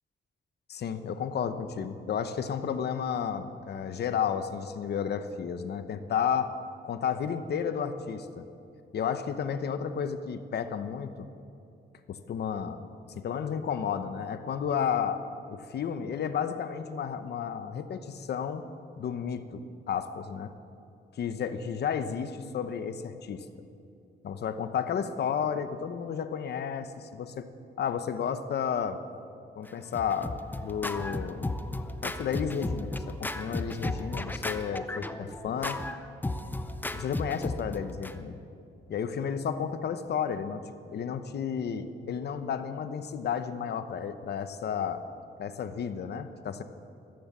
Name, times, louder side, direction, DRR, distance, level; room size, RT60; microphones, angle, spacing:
voice 1, 0.7-6.5 6.8-8.5 8.9-11.3 12.1-12.9 13.2-18.6 19.0-20.5 21.2-23.5 24.2-27.5 27.8-29.0 29.6-31.5 32.0-35.8 36.9-38.4 38.9-45.0 45.4-46.6, left 7 dB, 65° left, 10 dB, 0.9 m, -32 dB
Scratching (performance technique), 29.7-38.1, left 2 dB, 10° left, 0.5 m, -35 dB
14.0 x 14.0 x 7.3 m, 2.7 s
wide cardioid pair, 170°, 18 cm